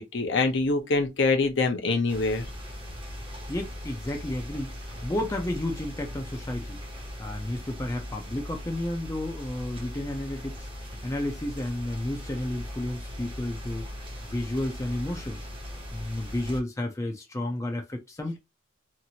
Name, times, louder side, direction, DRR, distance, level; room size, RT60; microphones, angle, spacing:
voice 1, 0.0-2.4, left 3 dB, 60° left, 0.7 m, -25 dB
sound 1, 2.1-16.6, left 1 dB, 25° right, 0.8 m, -39 dB
voice 2, 3.5-6.8 7.2-13.9 14.2-15.4 15.9-18.4, left 1 dB, 15° left, 0.5 m, -32 dB
2.8 x 2.5 x 2.8 m
head